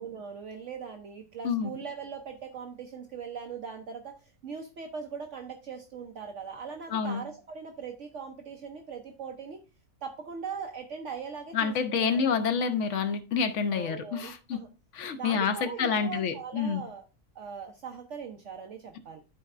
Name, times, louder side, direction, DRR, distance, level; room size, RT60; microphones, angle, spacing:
voice 1, 0.0-9.6 10.0-12.3 13.7-14.7 15.2-17.0 17.3-19.2, right 6 dB, 60° right, 1.0 m, -40 dB
voice 2, 6.9-7.2 11.5-14.6 14.9-16.8, left 6 dB, 60° left, 1.0 m, -28 dB
12.5 x 4.3 x 2.4 m
omnidirectional pair, 1.5 m